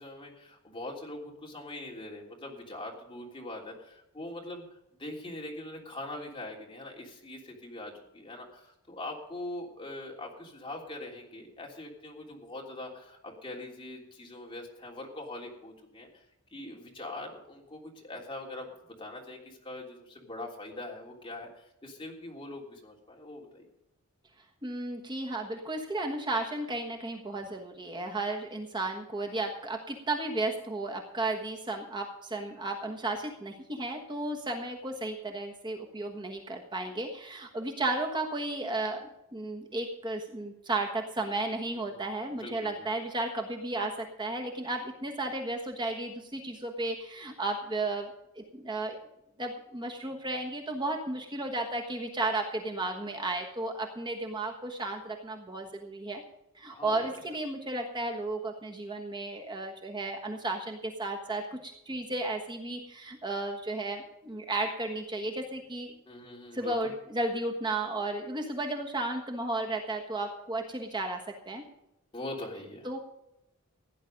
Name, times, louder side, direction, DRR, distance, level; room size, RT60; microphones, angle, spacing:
voice 1, 0.0-4.6 4.9-16.2 16.5-23.6 41.6-42.0 42.4-42.9 56.7-57.1 66.1-66.9 72.1-73.0, left 1 dB, 25° left, -1 dB, 3.3 m, -42 dB
voice 2, 24.6-48.1 48.4-49.0 49.4-56.2 56.5-65.9 66.5-71.2 71.5-71.6 72.8-73.0, right 2 dB, 20° right, 2 dB, 1.3 m, -34 dB
16.5 x 10.0 x 5.2 m, 0.85 s
head